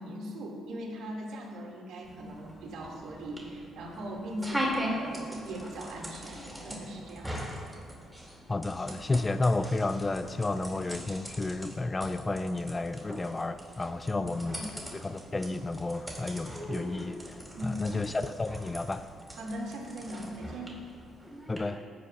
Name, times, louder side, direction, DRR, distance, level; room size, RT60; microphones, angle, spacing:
voice 1, 0.0-7.5 14.0-14.7 17.5-18.0 19.3-20.8, right 1 dB, 80° right, -2 dB, 2.2 m, -40 dB
sound 1, 2.0-21.6, equal, 5° right, 2.5 m, -40 dB
voice 2, 8.5-14.6 14.9-19.0 21.5-21.8, left 2 dB, 25° left, 11 dB, 0.3 m, -31 dB
16.5 x 9.3 x 2.4 m, 2.2 s
cardioid pair, 90°, 0 cm